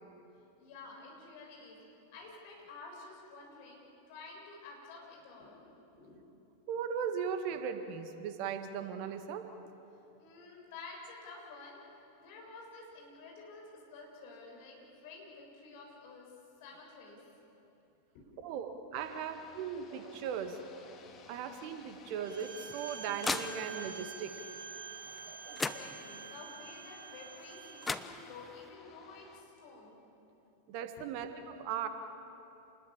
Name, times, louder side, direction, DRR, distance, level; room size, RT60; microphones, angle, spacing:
voice 1, 0.6-1.8 2.1-6.2 10.2-11.8 12.2-16.3 16.6-17.2 18.3-18.6 25.0-30.0 31.1-31.2, left 3 dB, 50° left, -1 dB, 6.7 m, -51 dB
voice 2, 6.7-9.4 18.4-20.7 21.3-24.3 25.0-25.6 30.7-31.9, right 7 dB, 45° right, 8 dB, 1.7 m, -38 dB
sound 1, 18.9-29.4, left 5 dB, 30° left, 2.4 m, -58 dB
Bowed string instrument, 22.2-28.0, right 6 dB, 70° right, 1.9 m, -47 dB
sound 2, 22.4-24.0 25.2-25.3 25.6-26.4 27.5-27.6 27.8-28.7, left 3 dB, 10° left, 0.8 m, -38 dB
28.5 x 20.5 x 7.5 m, 3.0 s
figure-of-eight pair, 90°, 0 cm